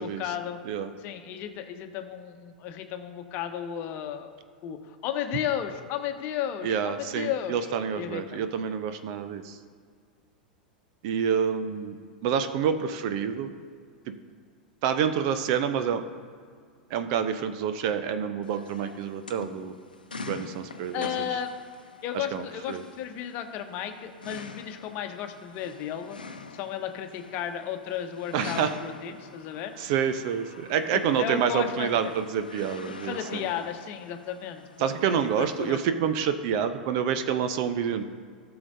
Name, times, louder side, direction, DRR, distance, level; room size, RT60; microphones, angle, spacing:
voice 1, 0.0-0.6 1.0-4.3 4.6-7.7 7.9-8.4 20.9-21.5 22.0-26.2 26.5-29.7 30.9-32.1 32.8-34.6 35.1-36.1, left 9 dB, 40° left, 7 dB, 1.0 m, -34 dB
voice 2, 6.6-9.6 11.0-12.0 12.2-13.5 14.1-14.2 14.8-16.0 16.9-19.7 20.3-21.1 22.1-22.8 28.3-28.7 29.8-33.4 34.8-38.0, right 7 dB, 50° right, 9 dB, 0.7 m, -28 dB
sound 1, 18.4-35.9, left 3 dB, 80° left, 0.7 m, -45 dB
16.5 x 6.9 x 2.7 m, 2.1 s
figure-of-eight pair, 90°, 5 cm